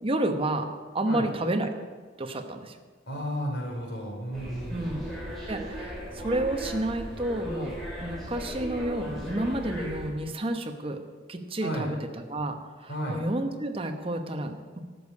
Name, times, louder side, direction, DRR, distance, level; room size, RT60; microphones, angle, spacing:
voice 1, 0.0-0.7 0.9-1.7 2.2-2.8 4.7-5.1 5.5-11.0 11.3-14.8, right 1 dB, 30° right, 6 dB, 1.0 m, -30 dB
voice 2, 3.1-5.0 11.6-11.9 12.9-13.2, equal, 65° left, -1 dB, 3.9 m, -33 dB
sound 1, 4.3-10.1, equal, ahead, 3.8 m, -37 dB
12.5 x 6.6 x 8.5 m, 1.5 s
head